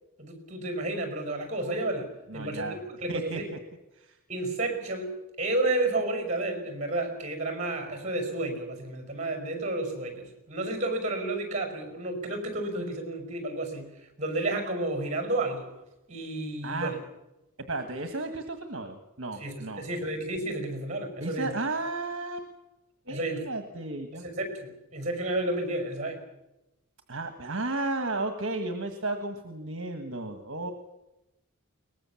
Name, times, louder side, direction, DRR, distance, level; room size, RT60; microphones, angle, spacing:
voice 1, 0.2-2.1 2.3-3.5 4.3-13.9 14.2-15.7 16.1-17.0 19.4-21.5 23.1-23.5 24.2-26.2, right 2 dB, 35° right, 6 dB, 5.4 m, -31 dB
voice 2, 2.3-2.8 3.1-3.6 4.0-4.1 16.6-16.9 17.7-19.8 21.2-22.5 23.1-24.2 27.1-30.7, right 2 dB, 60° right, 7 dB, 1.6 m, -33 dB
22.5 x 20.0 x 7.2 m, 0.95 s
head